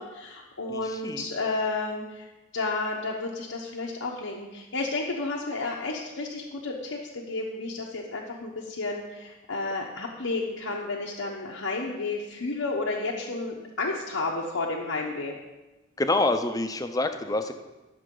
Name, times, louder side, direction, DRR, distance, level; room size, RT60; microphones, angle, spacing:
voice 1, 0.0-2.3 2.5-15.3, left 3 dB, 85° left, -3 dB, 1.0 m, -31 dB
voice 2, 0.7-1.2 16.0-17.5, left 2 dB, 15° left, 8 dB, 0.5 m, -27 dB
12.5 x 6.5 x 3.8 m, 1.1 s
head